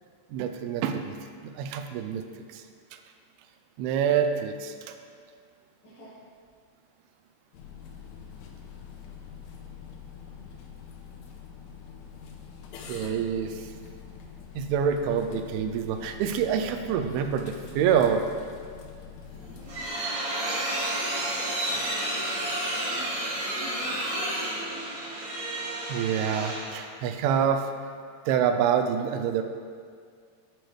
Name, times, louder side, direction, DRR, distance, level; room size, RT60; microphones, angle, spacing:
voice 1, 0.3-1.2 1.6-2.2 2.5-2.6 3.8-4.7 12.9-13.5 14.6-18.2 25.9-27.7 28.3-29.4, right 8 dB, 85° right, 6 dB, 2.3 m, -26 dB
voice 2, 5.8-6.1 20.6-24.8, left 1 dB, 55° left, -10 dB, 1.5 m, -45 dB
sound 1, 7.5-19.9, left 7 dB, 90° left, 2.8 m, -45 dB
sound 2, 19.3-26.8, right 1 dB, 55° right, 2.3 m, -31 dB
10.5 x 4.7 x 3.3 m, 2.1 s
omnidirectional pair, 4.8 m